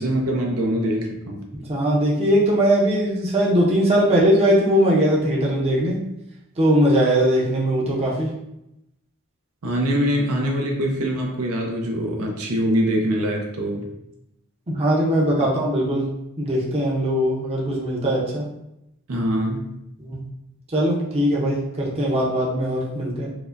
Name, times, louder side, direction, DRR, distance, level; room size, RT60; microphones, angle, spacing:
voice 1, 0.0-1.4 9.6-13.9 19.1-19.8, equal, 80° right, 0 dB, 0.6 m, -23 dB
voice 2, 1.7-6.0 6.6-8.3 14.7-16.1 16.4-18.4 20.1-20.2 20.7-23.3, equal, 25° right, -4 dB, 0.6 m, -20 dB
4.6 x 2.1 x 2.5 m, 0.84 s
head